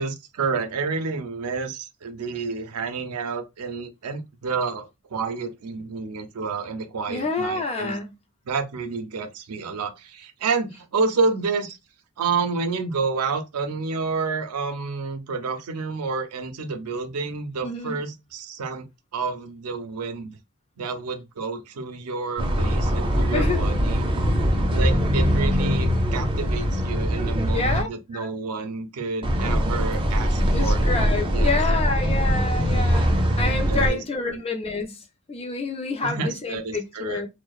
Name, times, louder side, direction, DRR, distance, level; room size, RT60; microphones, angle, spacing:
voice 1, 0.0-8.0 8.5-11.8 12.2-18.9 19.1-20.4 20.8-24.1 24.7-30.9 31.3-31.6 32.6-32.8 33.7-34.4 36.0-37.2, right 4 dB, 80° right, 0.5 m, -29 dB
voice 2, 7.1-8.1 17.6-18.0 23.3-23.6 27.5-27.9 28.1-28.3 30.5-35.0 35.3-37.3, left 3 dB, 25° left, 0.4 m, -28 dB
sound 1, 22.4-27.8 29.2-33.9, equal, 25° right, 0.5 m, -22 dB
2.7 x 2.0 x 2.3 m
head